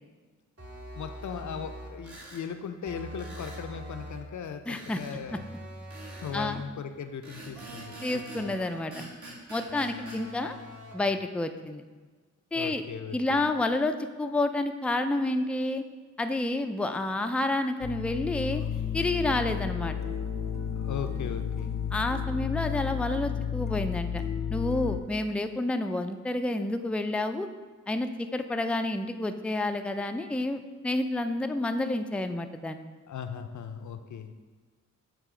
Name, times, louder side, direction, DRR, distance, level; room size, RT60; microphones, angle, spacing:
sound 1, 0.6-2.1 2.8-4.4 5.3-6.7 7.6-9.0 9.7-11.1, right 1 dB, 45° right, 1.4 m, -44 dB
voice 1, 0.9-5.4 6.2-8.5 12.5-13.5 20.8-21.7 23.3-23.4 33.1-34.3, left 7 dB, 65° left, 8 dB, 0.6 m, -38 dB
sound 2, 2.0-2.4 3.2-3.7 4.7-5.2 5.9-6.4 7.2-8.5 8.9-10.2, right 1 dB, 65° right, 1.8 m, -45 dB
voice 2, 4.7-5.0 6.3-6.6 8.0-8.9 9.5-10.6 10.9-11.8 12.5-12.8 13.1-15.8 16.2-18.6 18.9-20.0 21.9-24.2 24.5-27.5 27.9-32.8, left 2 dB, 5° left, 7 dB, 0.4 m, -29 dB
sound 3, 17.8-25.0, left 8 dB, 85° left, 0.9 m, -32 dB
7.3 x 3.0 x 4.8 m, 1.4 s
cardioid pair, 45°, 32 cm